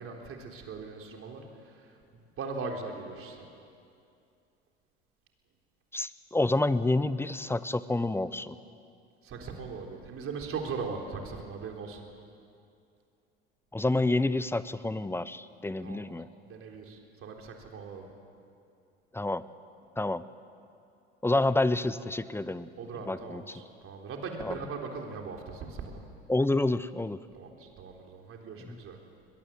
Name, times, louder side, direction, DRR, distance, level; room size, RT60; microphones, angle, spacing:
voice 1, 0.0-3.5 9.2-12.0 15.8-16.2 16.4-18.1 22.8-26.0 27.3-29.0, right 4 dB, 45° right, 2 dB, 3.9 m, -40 dB
voice 2, 5.9-8.6 13.7-16.3 19.1-19.4 20.0-20.2 21.2-22.7 23.1-23.6 24.4-24.6 26.3-27.2 28.6-28.8, left 2 dB, 5° left, 16 dB, 0.7 m, -28 dB
21.5 x 21.5 x 7.7 m, 2.5 s
hypercardioid pair, 70°, 32 cm